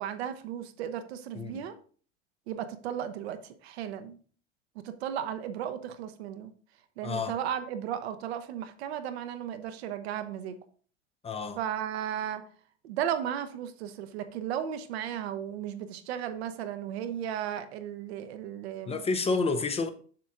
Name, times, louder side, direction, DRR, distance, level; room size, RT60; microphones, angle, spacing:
voice 1, 0.0-1.7 2.5-4.2 4.8-6.5 7.0-10.6 11.6-12.4 12.8-19.0, right 9 dB, 65° right, 0.8 m, -35 dB
voice 2, 7.0-7.4 11.2-11.6 18.9-19.9, left 4 dB, 15° left, 0.6 m, -29 dB
7.5 x 6.2 x 2.6 m
figure-of-eight pair, 80°, 35 cm